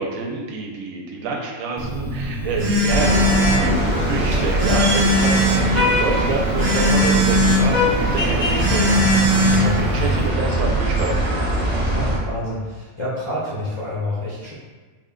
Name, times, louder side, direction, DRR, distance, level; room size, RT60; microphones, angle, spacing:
voice 1, 0.0-11.6, right 3 dB, 80° right, 0 dB, 1.0 m, -27 dB
Telephone, 1.8-10.3, equal, 60° right, 0.5 m, -21 dB
sound 1, 2.9-12.2, equal, 35° right, 1.0 m, -21 dB
voice 2, 11.9-14.5, left 1 dB, 30° left, -9 dB, 0.5 m, -28 dB
3.9 x 2.2 x 3.7 m, 1.4 s
omnidirectional pair, 1.5 m